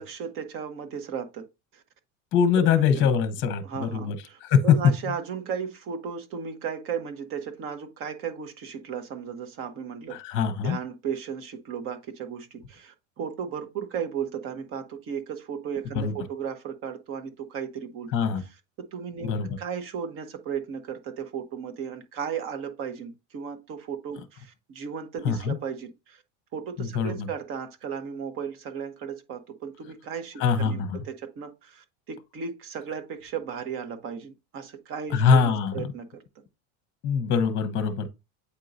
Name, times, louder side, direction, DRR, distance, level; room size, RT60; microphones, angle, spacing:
voice 1, 0.0-1.4 1.7-1.8 2.5-3.1 3.6-10.2 10.6-18.1 18.3-18.5 18.8-26.2 26.5-36.2, right 7 dB, 35° right, 1.1 m, -35 dB
voice 2, 2.3-4.2 4.4-4.8 10.1-10.8 15.9-16.1 18.1-18.4 19.2-19.6 25.2-25.6 26.8-27.3 30.4-31.0 35.1-35.8 37.0-38.1, left 6 dB, 35° left, 1.0 m, -23 dB
8.4 x 4.5 x 2.6 m
cardioid pair, 165°, 35 cm